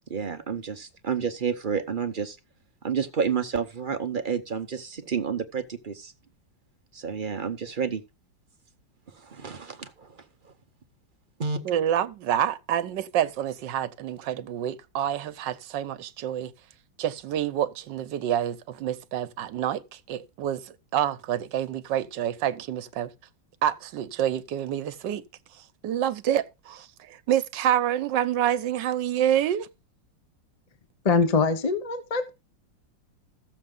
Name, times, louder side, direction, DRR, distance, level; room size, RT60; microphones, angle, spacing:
voice 1, 0.1-2.4 2.8-6.1 6.9-8.0 9.1-10.5 11.4-11.6, right 6 dB, 40° right, 0.7 m, -30 dB
voice 2, 11.6-16.5 17.0-23.1 23.6-25.2 25.8-29.7, right 10 dB, 75° right, 1.4 m, -27 dB
voice 3, 31.0-32.3, left 4 dB, 30° left, 0.7 m, -23 dB
14.5 x 7.2 x 3.8 m
omnidirectional pair, 2.0 m